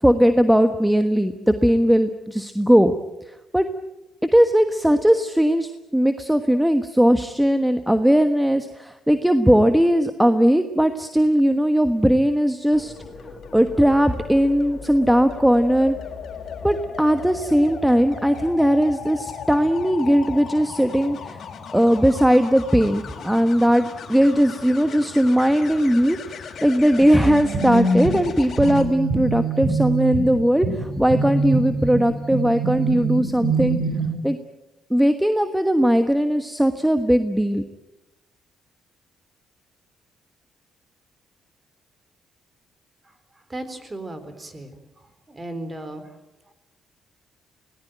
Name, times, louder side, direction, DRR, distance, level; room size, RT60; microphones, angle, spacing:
voice 1, 0.0-2.9 3.5-3.7 4.3-12.9 13.5-16.0 16.6-21.4 21.7-33.8 34.2-34.4 34.9-37.6, equal, 5° right, 8 dB, 1.3 m, -19 dB
sound 1, 12.7-28.8 30.7-31.0, left 6 dB, 55° left, 4.3 m, -37 dB
sound 2, 27.2-34.1, right 3 dB, 60° right, 4.8 m, -24 dB
voice 2, 43.5-44.7 45.3-46.0, right 1 dB, 25° right, 10 dB, 3.9 m, -35 dB
24.0 x 18.5 x 9.1 m, 0.97 s
cardioid pair, 90°, 0 cm